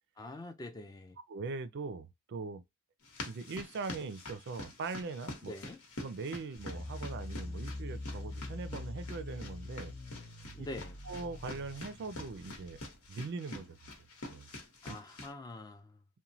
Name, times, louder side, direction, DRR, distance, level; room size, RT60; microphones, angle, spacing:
voice 1, 0.2-1.2 5.5-5.8 10.5-10.9 14.8-16.0, left 2 dB, 20° left, 0.4 m, -45 dB
voice 2, 1.3-2.6 3.2-5.5 6.0-9.9 10.6-10.7 11.0-12.8 13.1-13.8 14.3-14.5 14.9-15.0, right 4 dB, 55° right, 0.4 m, -41 dB
sound 1, 3.0-15.3, left 2 dB, 85° left, 1.1 m, -47 dB
sound 2, 6.6-13.1, left 2 dB, 45° left, 0.8 m, -44 dB
3.0 x 2.1 x 2.7 m
head